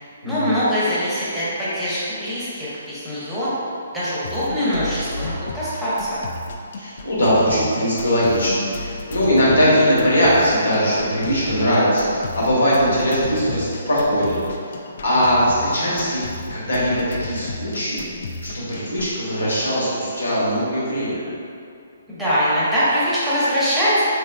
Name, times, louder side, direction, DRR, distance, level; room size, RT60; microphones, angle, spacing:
voice 1, 0.2-3.5 3.9-6.2 22.1-24.0, equal, 5° right, -11 dB, 0.8 m, -22 dB
sound 1, 4.2-19.2, left 2 dB, 45° left, 0.3 m, -34 dB
voice 2, 6.8-14.4 14.7-16.2 16.5-18.1 18.4-21.3, equal, 70° left, -7 dB, 1.2 m, -20 dB
3.6 x 3.3 x 2.3 m, 2.4 s
figure-of-eight pair, 130°, 0 cm